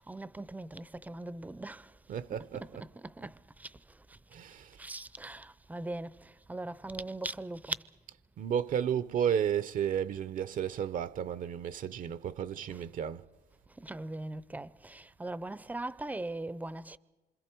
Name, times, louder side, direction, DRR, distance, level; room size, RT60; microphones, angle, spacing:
voice 1, 0.0-2.0 2.5-3.8 4.1-4.2 4.8-7.8 12.7-12.8 13.8-17.0, right 2 dB, 10° right, 0.6 m, -40 dB
voice 2, 2.1-2.9 4.3-4.9 8.4-13.3, right 9 dB, 55° right, 0.6 m, -33 dB
27.0 x 25.0 x 4.5 m
cardioid pair, 110°, 17 cm